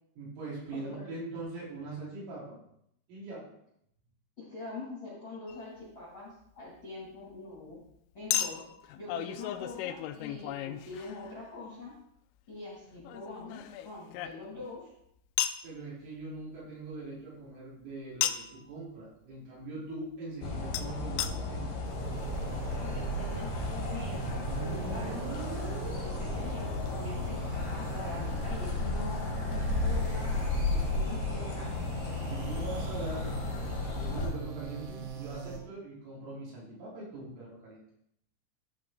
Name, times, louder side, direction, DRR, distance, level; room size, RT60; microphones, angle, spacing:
voice 1, 0.2-2.6 3.1-3.5 15.6-21.7 29.8-29.9 32.0-33.3 33.8-37.8, right 2 dB, 70° right, -8 dB, 6.2 m, -42 dB
voice 2, 0.7-1.1 4.4-7.8 8.1-8.6 8.9-11.9 12.5-14.9 22.8-25.2 25.7-27.4 27.7-31.7, left 2 dB, 45° left, -7 dB, 1.7 m, -44 dB
Chink clink, 5.5-5.6 8.3-11.5 13.0-14.7 15.4-15.7 18.2-18.6 20.7-20.8 21.2-21.3 22.0-22.1 22.2-22.3, left 11 dB, 85° left, 3.0 m, -34 dB
sound 1, 20.4-34.3, left 3 dB, 65° left, 2.2 m, -34 dB
sound 2, 21.9-35.6, right 2 dB, 90° right, 4.0 m, -38 dB
14.0 x 4.7 x 3.8 m, 0.74 s
omnidirectional pair, 5.9 m